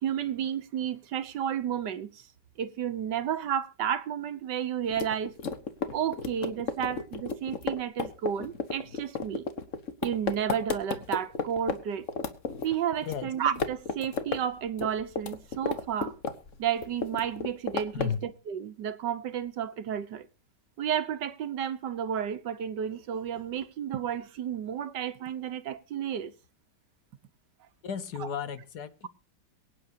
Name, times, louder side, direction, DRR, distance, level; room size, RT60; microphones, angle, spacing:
voice 1, 0.0-2.2 2.6-5.5 5.9-9.5 10.0-12.1 12.6-16.1 16.6-20.3 20.8-26.3, right 9 dB, 85° right, 1.7 m, -32 dB
sound 1, 4.9-11.8 12.1-13.2 13.5-14.4 14.7-16.5 16.8-18.2, left 5 dB, 50° left, 1.5 m, -32 dB
voice 2, 13.0-13.3 17.9-18.2 27.8-29.1, left 7 dB, 70° left, 1.6 m, -34 dB
23.0 x 9.4 x 2.7 m
omnidirectional pair, 1.8 m